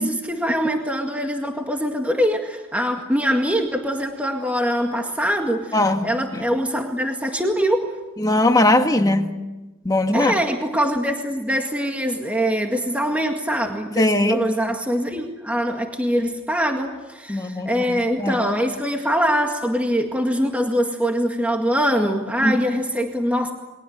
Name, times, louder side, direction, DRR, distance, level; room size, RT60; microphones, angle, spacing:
voice 1, 0.0-8.0 10.1-23.5, equal, 5° right, 2.0 m, -23 dB
voice 2, 5.7-6.4 8.2-9.3 9.9-10.3 14.0-14.4 17.3-18.4 22.4-22.6, left 1 dB, 15° left, 1.6 m, -20 dB
29.0 x 22.5 x 8.1 m
head